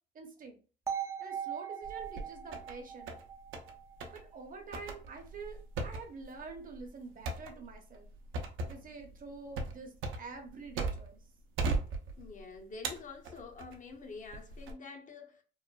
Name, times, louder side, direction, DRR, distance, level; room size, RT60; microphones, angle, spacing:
voice 1, 0.1-0.6 1.2-3.2 4.1-8.1 8.6-11.2, right 4 dB, 45° right, 0.7 m, -47 dB
sound 1, 0.9-4.8, right 8 dB, 15° right, 0.4 m, -41 dB
sound 2, 1.8-2.7 3.1-3.7 4.0-4.2 4.7-11.2 11.6-12.4 12.8-13.8 14.3-14.7, right 3 dB, 80° right, 0.5 m, -37 dB
voice 2, 12.2-15.4, left 4 dB, 40° left, 0.6 m, -47 dB
3.0 x 2.1 x 2.2 m
cardioid pair, 90°, 20 cm